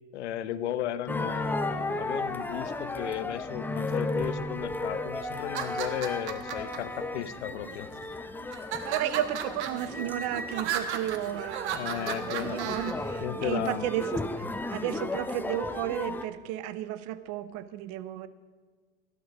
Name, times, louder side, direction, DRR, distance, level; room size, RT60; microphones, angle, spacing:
voice 1, 0.1-7.9 11.7-13.9, left 11 dB, 75° left, 15 dB, 0.8 m, -35 dB
sound 1, 1.1-16.2, left 2 dB, 5° left, 0.7 m, -35 dB
sound 2, 5.4-6.8 7.5-8.0 8.5-12.9, right 9 dB, 70° right, 1.3 m, -35 dB
voice 2, 8.8-14.4 14.7-18.3, right 12 dB, 50° right, 15 dB, 0.9 m, -33 dB
13.0 x 11.5 x 5.2 m, 1.5 s
hypercardioid pair, 95°, 35 cm